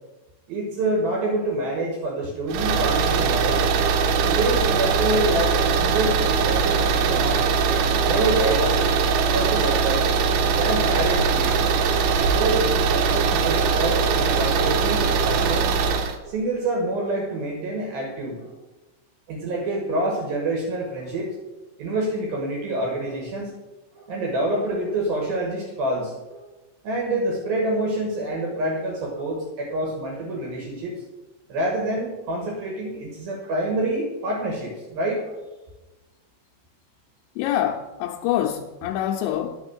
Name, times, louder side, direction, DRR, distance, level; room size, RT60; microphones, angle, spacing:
voice 1, 0.5-3.7 4.2-7.6 8.0-10.1 10.5-11.7 12.3-15.7 16.2-18.5 19.3-21.3 21.8-23.5 23.9-26.5 26.8-31.0 31.5-35.4, right 1 dB, 65° right, 2.8 m, -27 dB
sound 1, 2.5-16.2, right 5 dB, 85° right, 3.1 m, -21 dB
voice 2, 37.4-39.6, left 11 dB, 80° left, 2.7 m, -25 dB
10.5 x 6.4 x 6.1 m
omnidirectional pair, 5.5 m